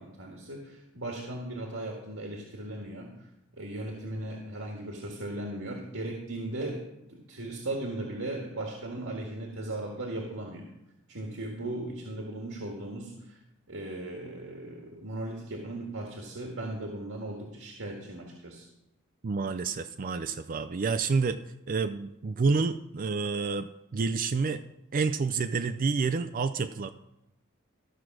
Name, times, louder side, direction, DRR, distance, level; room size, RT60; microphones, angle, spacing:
voice 1, 0.0-3.3 3.6-10.7 11.1-13.4 13.7-18.7, right 1 dB, 75° right, 0 dB, 1.8 m, -37 dB
voice 2, 19.2-21.4 21.7-23.7 23.9-24.6 24.9-26.9, right 4 dB, 40° right, 10 dB, 0.4 m, -28 dB
13.5 x 6.3 x 6.1 m, 0.87 s
head